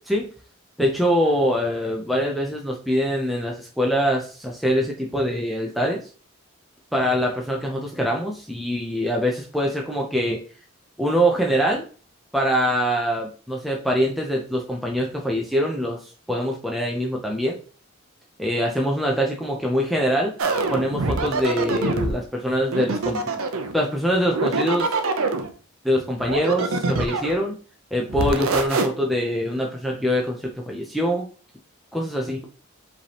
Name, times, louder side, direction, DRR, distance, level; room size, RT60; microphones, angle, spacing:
voice 1, 0.8-6.0 6.9-10.4 11.0-11.9 12.3-16.0 16.3-17.5 18.4-20.3 20.7-23.4 23.7-24.9 25.8-27.5 27.9-30.4 30.7-31.2 31.9-32.4, equal, ahead, -1 dB, 0.5 m, -23 dB
sound 1, 20.4-22.2 22.7-23.8 24.2-25.5 26.2-27.4 28.1-28.9, right 3 dB, 85° right, 0.6 m, -24 dB
5.0 x 3.4 x 2.9 m, 0.39 s
head